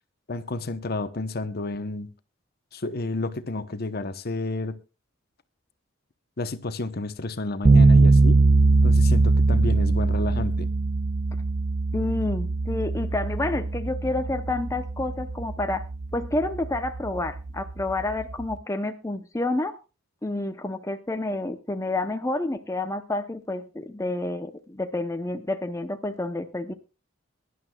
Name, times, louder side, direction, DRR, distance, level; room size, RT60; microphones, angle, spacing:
voice 1, 0.3-2.1 2.7-4.8 6.4-8.4 8.8-10.7, left 2 dB, 55° left, 0.9 m, -31 dB
sound 1, 7.7-18.5, right 3 dB, 40° right, 0.8 m, -22 dB
voice 2, 11.9-15.9 16.1-19.8 20.2-26.7, left 2 dB, 15° left, 0.7 m, -29 dB
22.5 x 11.0 x 2.3 m
head